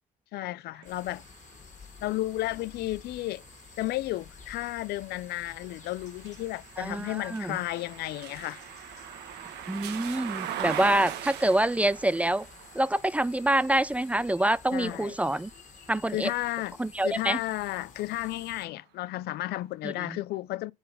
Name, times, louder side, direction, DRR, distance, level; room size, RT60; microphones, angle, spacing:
voice 1, 0.3-1.2 2.0-3.4 3.8-8.6 14.7-15.2 16.1-16.8 17.0-20.7, left 16 dB, 70° left, 0.4 m, -33 dB
sound 1, 0.7-16.7 17.2-18.5, right 10 dB, 80° right, 1.3 m, -43 dB
sound 2, 0.8-18.7, left 6 dB, 45° left, 2.1 m, -52 dB
voice 2, 6.8-7.6 9.7-12.5 12.7-15.5 15.9-16.3 16.8-17.4 19.8-20.2, right 1 dB, 10° right, 0.4 m, -26 dB
7.7 x 4.0 x 5.4 m
cardioid pair, 110°, 17 cm